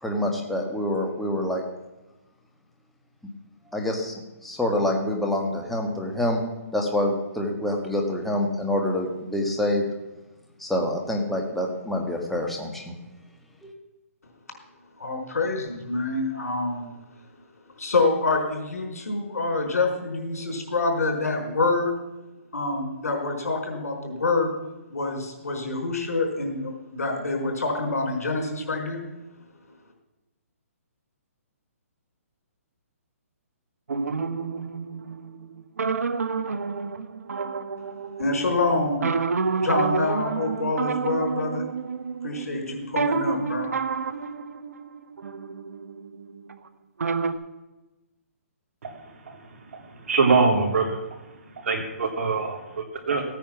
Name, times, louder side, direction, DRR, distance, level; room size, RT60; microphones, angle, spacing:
voice 1, 0.0-1.6 3.7-6.4 6.7-9.8 10.6-12.9 13.6-13.7, left 1 dB, ahead, 0 dB, 1.6 m, -26 dB
voice 2, 15.0-16.9 17.8-21.9 22.5-24.5 24.9-29.0 38.2-39.1 39.6-41.6 42.2-43.7, left 3 dB, 80° left, 2 dB, 4.6 m, -26 dB
sound 1, 33.9-38.5 39.0-46.7 47.0-47.3, right 5 dB, 80° right, 1.0 m, -29 dB
voice 3, 49.7-51.2 51.6-53.2, right 4 dB, 60° right, 2 dB, 3.4 m, -24 dB
15.5 x 9.2 x 6.0 m, 1.1 s
hypercardioid pair, 150°, 8 cm